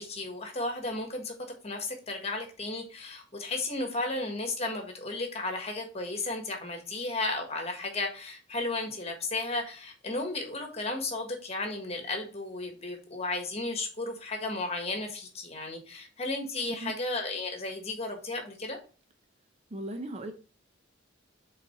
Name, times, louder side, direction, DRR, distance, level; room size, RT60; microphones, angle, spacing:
voice 1, 0.0-1.3 1.6-18.8, left 2 dB, 30° left, 1.5 m, -34 dB
voice 2, 19.7-20.3, right 1 dB, 30° right, 0.6 m, -37 dB
5.2 x 4.1 x 5.6 m
head